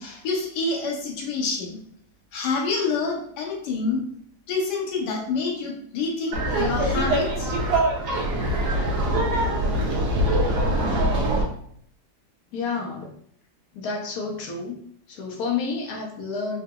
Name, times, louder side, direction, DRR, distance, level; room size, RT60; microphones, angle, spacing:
voice 1, 0.0-1.8 2.3-4.0 4.5-7.5, left 4 dB, 85° left, -1 dB, 1.3 m, -27 dB
Laughter, 6.3-11.4, right 1 dB, 75° right, 1.3 m, -23 dB
voice 2, 12.5-13.1 13.7-14.8 15.1-16.6, left 4 dB, 70° left, 0 dB, 1.2 m, -30 dB
3.8 x 2.7 x 2.2 m, 0.65 s
omnidirectional pair, 1.8 m